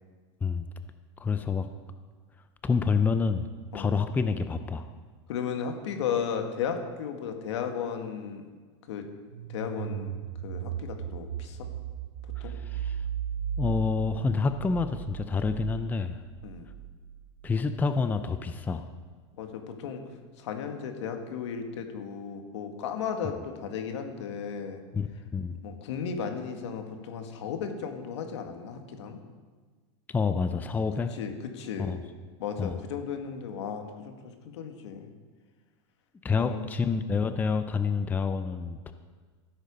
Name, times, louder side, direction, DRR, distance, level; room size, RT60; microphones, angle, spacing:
voice 1, 1.2-1.7 2.6-3.5 3.7-4.8 12.4-13.0 13.6-16.2 17.4-18.9 24.9-25.6 30.1-31.1 31.8-32.0 32.6-32.8 36.2-38.9, left 5 dB, 10° left, 10 dB, 0.5 m, -28 dB
voice 2, 5.3-8.5 8.9-9.0 9.5-10.1 10.4-11.7 12.4-12.5 16.4-16.7 19.4-20.0 20.4-24.8 25.6-29.2 31.1-32.0 32.4-34.1 34.4-35.1 36.3-36.6, left 7 dB, 75° left, 5 dB, 1.8 m, -35 dB
sound 1, 9.3-18.0, right 8 dB, 70° right, 0.8 m, -37 dB
14.5 x 8.1 x 5.3 m, 1.5 s
supercardioid pair, 130°, 15 cm